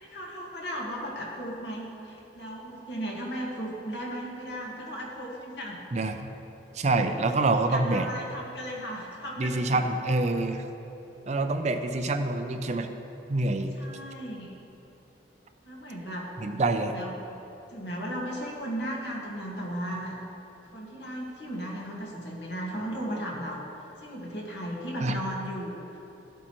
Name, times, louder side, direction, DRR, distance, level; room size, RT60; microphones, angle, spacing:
voice 1, 0.0-5.8 7.7-9.8 13.8-14.6 15.6-16.3 16.8-17.2 17.7-20.2 20.7-23.7 24.0-26.0, equal, 70° left, -2 dB, 1.7 m, -36 dB
voice 2, 5.9-6.3 6.7-8.1 9.4-10.7 11.3-12.9 13.3-13.7 16.4-16.9 25.0-25.2, right 2 dB, 40° right, 7 dB, 0.5 m, -26 dB
14.0 x 8.1 x 3.0 m, 3.0 s
head